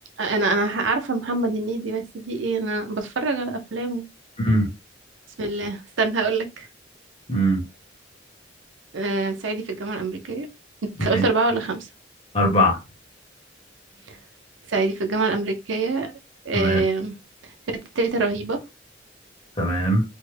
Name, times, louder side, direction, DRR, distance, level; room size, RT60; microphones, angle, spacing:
voice 1, 0.2-4.0 5.4-6.7 8.9-10.5 10.8-11.9 14.1-14.2 14.7-16.1 16.4-17.1 17.9-18.6, right 3 dB, 80° right, 0.6 m, -25 dB
voice 2, 12.3-12.8 16.5-16.8 19.6-20.0, equal, 30° left, 1.2 m, -20 dB
3.3 x 2.2 x 3.2 m
head